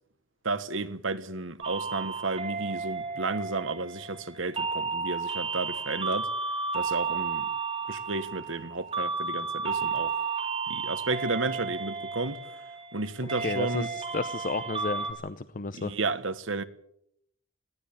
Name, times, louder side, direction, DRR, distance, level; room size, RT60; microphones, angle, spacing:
voice 1, 0.4-6.3 6.7-7.5 7.9-10.1 10.7-12.4 12.9-13.9 15.7-16.6, right 3 dB, 70° right, 1.4 m, -32 dB
sound 1, 1.6-15.1, right 4 dB, 30° right, 3.9 m, -33 dB
voice 2, 13.4-15.9, left 3 dB, 45° left, 0.7 m, -33 dB
21.0 x 15.5 x 8.7 m
head